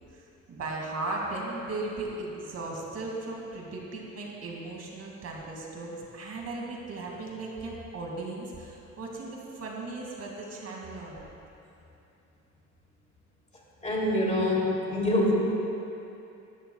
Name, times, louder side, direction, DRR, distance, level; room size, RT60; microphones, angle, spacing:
voice 1, 0.1-11.3, right 2 dB, 55° right, -2 dB, 2.4 m, -37 dB
voice 2, 13.8-15.5, left 1 dB, 25° left, -4 dB, 3.0 m, -25 dB
17.0 x 13.0 x 2.4 m, 2.8 s
cardioid pair, 90°, 30 cm